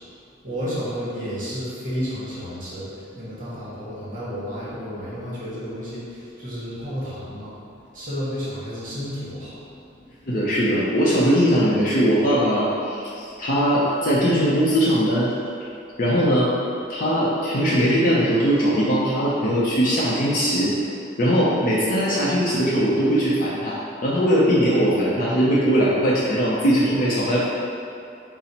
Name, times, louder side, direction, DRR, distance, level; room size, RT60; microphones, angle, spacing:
voice 1, 0.4-7.6 7.9-10.0, equal, 45° right, -9 dB, 1.1 m, -32 dB
voice 2, 10.3-15.3 16.0-16.5 16.9-20.7 21.2-23.8 24.0-27.5, equal, 45° left, -7 dB, 0.5 m, -20 dB
4.0 x 2.0 x 4.2 m, 2.6 s
head